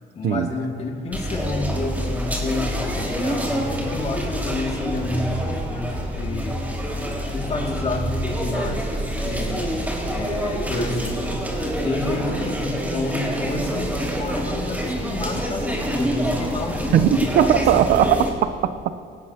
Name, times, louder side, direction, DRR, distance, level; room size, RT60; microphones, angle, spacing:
voice 1, 0.1-6.6 7.3-9.7 10.1-11.5 11.8-17.6, left 3 dB, 40° left, 1 dB, 2.3 m, -30 dB
sound 1, 1.1-18.3, equal, 10° right, 4.4 m, -26 dB
voice 2, 16.9-19.0, right 10 dB, 65° right, 12 dB, 0.6 m, -19 dB
23.0 x 19.0 x 2.8 m, 2.3 s
cardioid pair, 110°, 17 cm